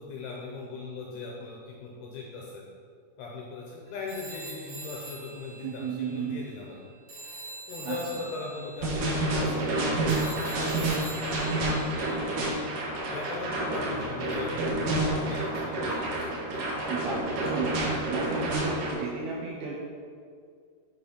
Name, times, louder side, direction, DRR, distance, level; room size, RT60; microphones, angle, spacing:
voice 1, 0.0-2.7 3.2-6.8 7.7-12.3 13.1-16.3, left 3 dB, 75° left, -2 dB, 2.4 m, -40 dB
Telephone, 4.1-6.8 7.1-12.3, right 2 dB, 45° right, 1.7 m, -45 dB
voice 2, 5.6-6.4 7.8-8.0 16.9-19.8, right 5 dB, 80° right, -3 dB, 2.3 m, -34 dB
sound 1, 8.8-18.9, right 1 dB, 65° right, 2.1 m, -29 dB
9.7 x 4.1 x 5.3 m, 2.1 s
omnidirectional pair, 5.3 m